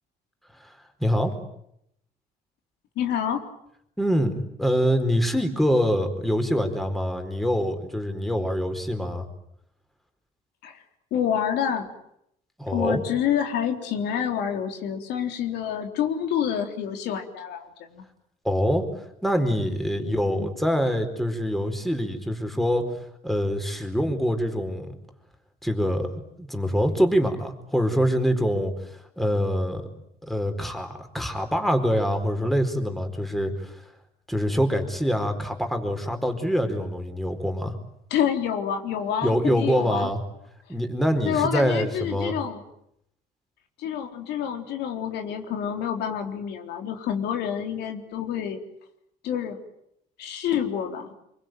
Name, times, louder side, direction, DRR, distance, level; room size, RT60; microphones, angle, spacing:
voice 1, 0.6-1.3 4.0-9.2 12.6-13.0 18.4-18.8 19.2-22.9 23.2-24.9 25.6-26.1 26.4-29.9 30.2-33.8 34.3-37.8 39.2-40.2 40.7-42.3, equal, ahead, 6 dB, 4.4 m, -25 dB
voice 2, 3.0-3.5 10.6-10.8 11.1-11.9 12.7-18.1 20.0-20.5 38.1-40.1 41.3-42.6 43.8-48.6 49.2-49.6 50.2-51.1, left 8 dB, 80° left, 5 dB, 3.7 m, -28 dB
26.0 x 24.0 x 9.3 m, 0.76 s
cardioid pair, 110°, 17 cm